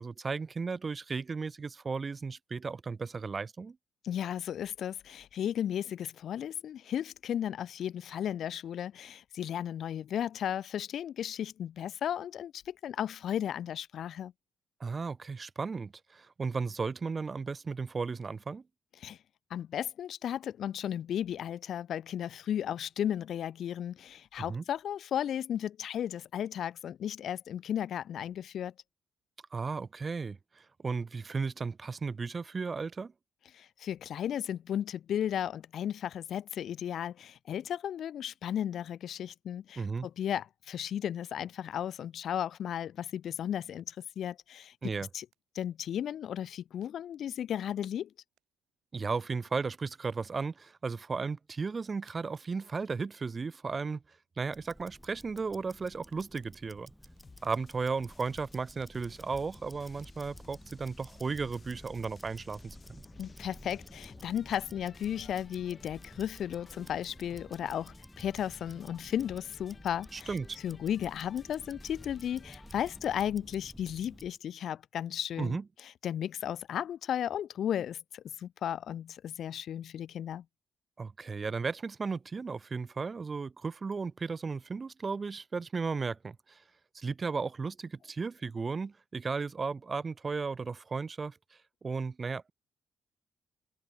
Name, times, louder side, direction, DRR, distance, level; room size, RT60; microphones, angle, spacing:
voice 1, 0.0-3.8 14.8-18.6 24.4-24.6 29.5-33.1 39.8-40.1 44.8-45.1 48.9-54.0 54.4-56.9 57.4-63.0 70.1-70.6 75.4-75.6 81.0-86.6 86.9-91.4 91.8-92.5, right 4 dB, 35° right, 0.6 m, -35 dB
voice 2, 4.0-14.3 19.0-19.2 19.5-28.7 33.5-44.7 45.1-45.3 45.6-48.1 63.2-70.3 70.6-75.6 76.0-80.4, left 10 dB, 65° left, 0.4 m, -35 dB
sound 1, 43.3-61.4, right 15 dB, 90° right, 7.2 m, -77 dB
Tick-tock, 54.5-74.4, equal, ahead, 1.4 m, -52 dB
sound 2, 57.0-73.0, left 4 dB, 30° left, 6.0 m, -56 dB
cardioid pair, 90°, 0 cm